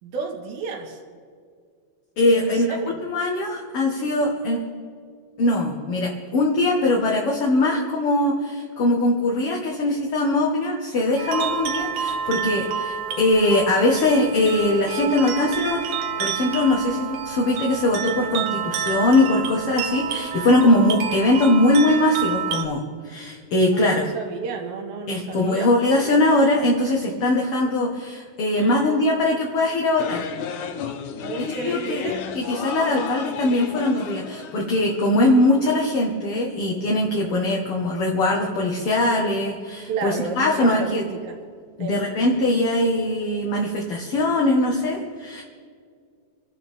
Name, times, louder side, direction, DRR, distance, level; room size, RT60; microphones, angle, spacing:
voice 1, 0.0-1.0 2.3-3.0 23.7-26.0 26.3-26.4 28.6-29.3 31.2-32.2 32.6-33.0 39.9-41.4 41.8-42.0, right 5 dB, 90° right, 2 dB, 3.6 m, -32 dB
voice 2, 2.2-2.7 3.1-4.6 5.4-15.9 16.2-24.0 25.1-30.2 31.4-32.0 32.4-41.0 41.8-45.4, left 2 dB, 50° left, -1 dB, 2.0 m, -21 dB
sound 1, 11.2-22.6, right 8 dB, 70° right, 1.5 m, -29 dB
sound 2, 30.0-35.4, left 6 dB, 70° left, 2.1 m, -33 dB
27.0 x 12.0 x 3.6 m, 2.1 s
omnidirectional pair, 4.1 m